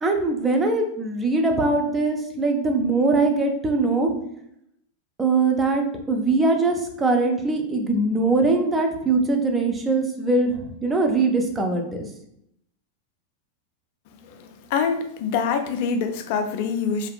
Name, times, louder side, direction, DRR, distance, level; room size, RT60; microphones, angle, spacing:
voice 1, 0.0-4.1 5.2-12.1, right 3 dB, 15° right, 3 dB, 0.5 m, -22 dB
voice 2, 14.7-17.1, left 6 dB, 50° left, 6 dB, 0.3 m, -25 dB
2.7 x 2.4 x 2.2 m, 0.74 s
figure-of-eight pair, 90°, 0 cm